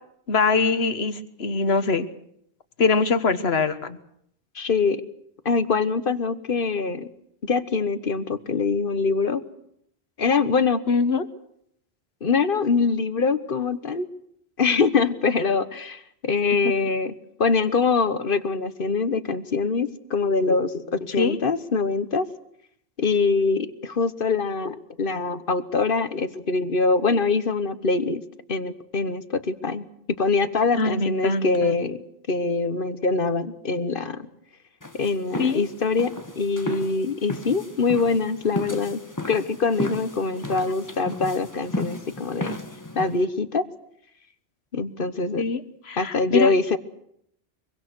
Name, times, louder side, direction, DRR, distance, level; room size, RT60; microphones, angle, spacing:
voice 1, 0.3-2.1 2.8-4.0 10.9-11.3 16.6-16.7 21.2-21.4 30.8-31.8 35.4-35.6 45.4-46.5, left 4 dB, 75° left, 11 dB, 1.6 m, -23 dB
voice 2, 4.5-5.0 5.4-7.1 7.4-9.4 10.2-10.8 12.2-14.0 14.6-17.1 17.4-22.3 23.0-28.2 28.5-29.8 30.2-32.0 32.3-34.3 34.9-39.0 39.3-42.6 42.9-43.7 44.7-45.4 46.0-46.8, left 4 dB, 60° left, 13 dB, 1.4 m, -24 dB
sound 1, 34.8-43.3, left 1 dB, 15° left, 1.6 m, -34 dB
24.0 x 24.0 x 6.3 m, 0.72 s
omnidirectional pair, 1.1 m